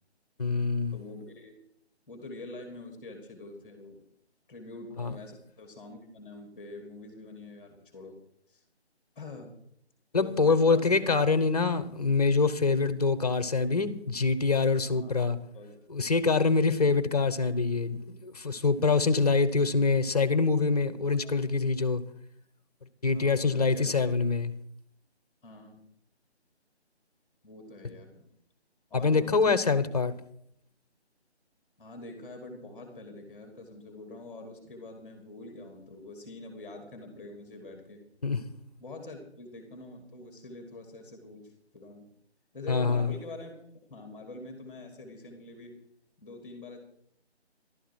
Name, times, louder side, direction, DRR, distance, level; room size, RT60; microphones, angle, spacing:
voice 1, 0.4-1.0 5.0-5.2 10.1-15.4 15.9-22.0 23.0-24.5 28.9-30.1 38.2-38.4 42.7-43.1, left 4 dB, 35° left, 1.0 m, -25 dB
voice 2, 0.9-1.6 2.1-4.0 4.5-8.2 8.5-8.6 9.2-9.6 10.2-11.0 14.9-15.1 15.5-15.9 21.2-21.4 23.1-23.9 25.4-25.8 27.4-28.3 28.9-29.7 31.8-38.1 38.8-42.1 42.5-45.8 46.2-46.8, left 2 dB, 10° left, 2.3 m, -45 dB
14.0 x 12.5 x 4.7 m
figure-of-eight pair, 155°, 34 cm